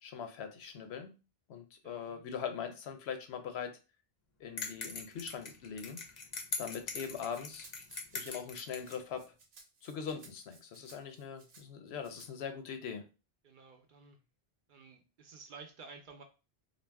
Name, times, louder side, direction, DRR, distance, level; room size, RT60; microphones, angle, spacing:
voice 1, 0.0-1.1 1.5-3.7 4.4-6.0 6.6-7.7 8.1-9.2 9.8-13.0, left 7 dB, 80° left, 7 dB, 0.8 m, -41 dB
voice 2, 1.8-2.3 13.4-14.2 14.7-16.2, right 4 dB, 60° right, 4 dB, 0.6 m, -53 dB
sound 1, 4.6-9.0, left 4 dB, 50° left, 0.6 m, -41 dB
Rattle (instrument), 6.9-11.6 12.0-12.3, right 4 dB, 80° right, 0.9 m, -59 dB
2.4 x 2.1 x 3.3 m, 0.31 s
omnidirectional pair, 1.1 m